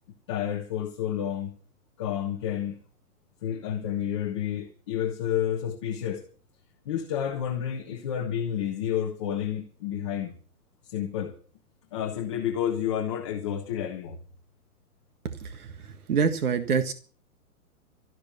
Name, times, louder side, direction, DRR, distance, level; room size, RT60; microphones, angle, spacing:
voice 1, 0.3-1.5 2.0-2.8 3.4-6.2 6.8-10.3 10.8-11.4 11.9-14.2, left 9 dB, 20° left, 1.0 m, -30 dB
voice 2, 15.2-16.9, right 6 dB, 70° right, 1.8 m, -27 dB
13.5 x 12.5 x 7.0 m
hypercardioid pair, 175°, 46 cm